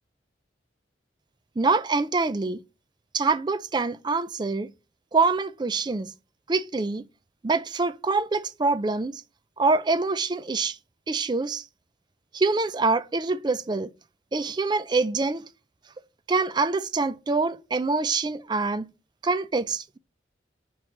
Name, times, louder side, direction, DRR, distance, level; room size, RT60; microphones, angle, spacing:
voice 1, 1.6-2.6 3.1-4.7 5.1-6.1 6.5-7.0 7.4-9.2 9.6-10.8 11.1-11.7 12.3-13.9 14.3-15.4 16.3-18.9 19.2-20.0, right 3 dB, 25° right, 0.4 m, -25 dB
5.8 x 4.7 x 6.3 m
head